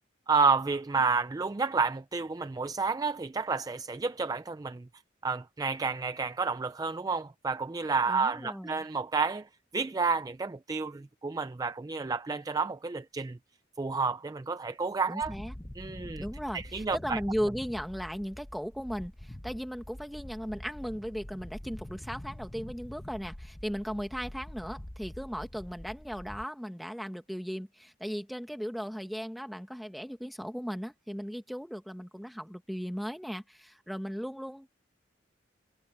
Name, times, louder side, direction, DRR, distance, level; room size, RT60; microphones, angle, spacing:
voice 1, 0.3-4.9 5.2-9.5 9.7-13.4 13.8-15.3 15.8-16.3 16.5-17.2, right 4 dB, 20° right, 0.3 m, -30 dB
voice 2, 8.1-8.8 15.1-15.5 16.2-34.7, equal, ahead, 1.6 m, -37 dB
sound 1, 15.2-26.4, left 1 dB, 15° left, 0.8 m, -45 dB
head